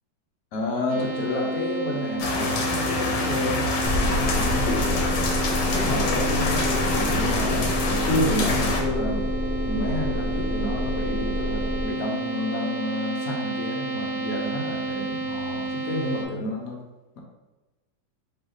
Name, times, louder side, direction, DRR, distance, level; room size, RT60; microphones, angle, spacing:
voice 1, 0.5-4.8 5.7-9.3 9.6-16.8, left 1 dB, 60° left, -1 dB, 1.0 m, -30 dB
sound 1, 0.9-16.2, right 2 dB, 65° right, 1.1 m, -31 dB
sound 2, 2.2-8.8, left 3 dB, 80° left, 1.4 m, -26 dB
sound 3, 3.8-11.9, left 1 dB, 40° left, 1.3 m, -28 dB
3.2 x 3.1 x 3.8 m, 1.1 s
omnidirectional pair, 1.9 m